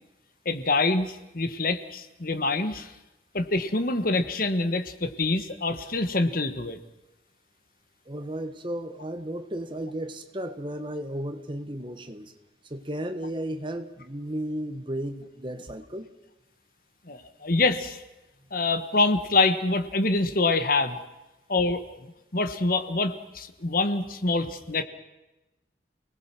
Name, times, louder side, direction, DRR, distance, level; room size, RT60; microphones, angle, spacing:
voice 1, 0.4-2.9 3.3-6.8 17.1-18.0 18.5-21.0 21.5-24.8, left 3 dB, 50° left, 10 dB, 1.4 m, -26 dB
voice 2, 8.0-12.3 12.6-16.1, right 1 dB, 25° right, 8 dB, 1.5 m, -34 dB
29.5 x 19.5 x 6.1 m, 0.99 s
head